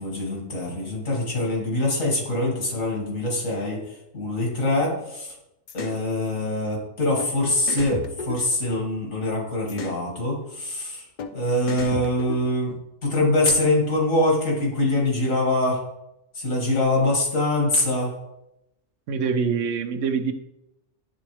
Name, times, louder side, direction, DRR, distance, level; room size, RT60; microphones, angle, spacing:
voice 1, 0.0-3.8 4.1-5.3 5.7-11.0 11.3-12.7 13.0-15.8 16.3-18.1, left 1 dB, 90° left, -2 dB, 2.4 m, -24 dB
sound 1, 5.7-6.0 7.2-7.3 7.7-9.1 9.7-10.0 11.2-11.3 11.7-12.8, left 5 dB, 60° left, 0.5 m, -34 dB
voice 2, 19.1-20.3, right 6 dB, 75° right, 9 dB, 0.9 m, -24 dB
9.8 x 3.7 x 3.2 m, 0.88 s
omnidirectional pair, 1.3 m